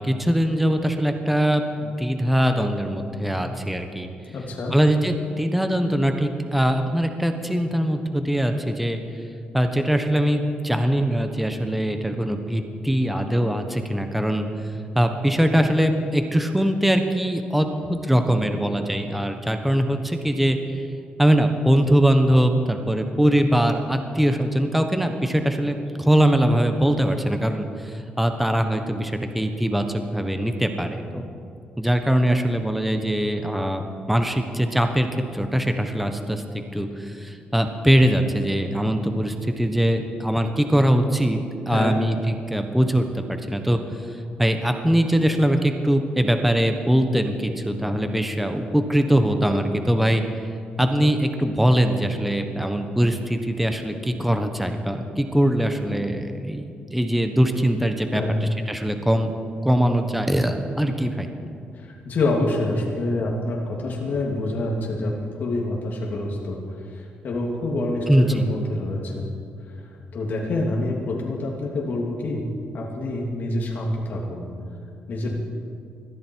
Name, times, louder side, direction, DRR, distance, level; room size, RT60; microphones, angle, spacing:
voice 1, 0.0-4.1 4.7-9.0 9.5-14.5 14.9-20.6 21.2-31.2 31.8-33.8 34.1-41.4 41.7-43.8 44.4-50.2 50.8-59.3 59.6-61.3 68.1-68.4, equal, 5° right, 6 dB, 1.2 m, -22 dB
voice 2, 4.3-4.7 41.7-42.0 58.1-58.4 61.7-66.6 66.8-69.3 70.1-72.5 72.7-74.5 75.1-75.3, left 2 dB, 60° left, -2 dB, 2.7 m, -26 dB
21.0 x 14.5 x 4.7 m, 2.4 s
cardioid pair, 110°, 3 cm